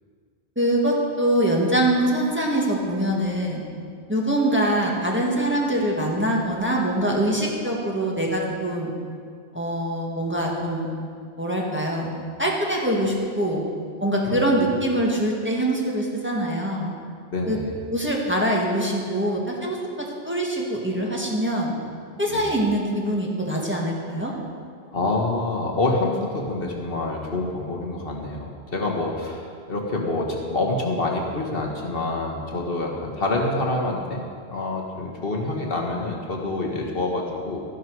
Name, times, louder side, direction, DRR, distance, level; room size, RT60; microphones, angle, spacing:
voice 1, 0.5-3.6 4.1-8.9 9.5-10.9 11.4-12.1 12.4-13.6 14.0-16.9 17.5-17.6 17.9-21.7 22.2-24.3, right 1 dB, 10° right, -2 dB, 1.6 m, -24 dB
voice 2, 17.3-17.7 22.3-22.4 24.9-29.4 29.7-34.2 34.5-37.6, left 2 dB, 60° left, 0 dB, 1.6 m, -26 dB
13.0 x 11.5 x 4.7 m, 2.1 s
omnidirectional pair, 1.1 m